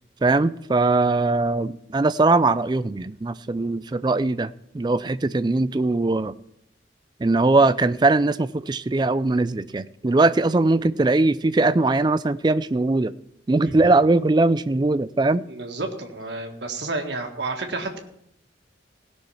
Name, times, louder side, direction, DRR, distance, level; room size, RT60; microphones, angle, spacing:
voice 1, 0.2-6.4 7.2-13.1 13.5-15.4, right 2 dB, 25° right, 0.3 m, -20 dB
voice 2, 15.5-18.0, right 3 dB, 65° right, 1.7 m, -30 dB
17.0 x 6.3 x 5.7 m
head